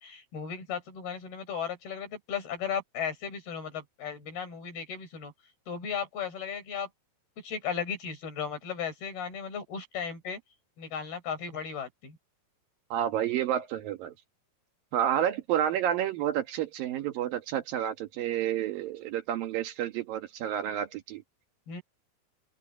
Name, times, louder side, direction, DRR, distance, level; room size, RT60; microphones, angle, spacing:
voice 1, 0.0-5.3 5.7-6.9 7.4-10.4 10.8-12.2 21.7-21.8, left 7 dB, 80° left, 8.5 m, -36 dB
voice 2, 12.9-14.1 14.9-21.2, right 10 dB, 70° right, 3.1 m, -30 dB
open air
omnidirectional pair, 4.4 m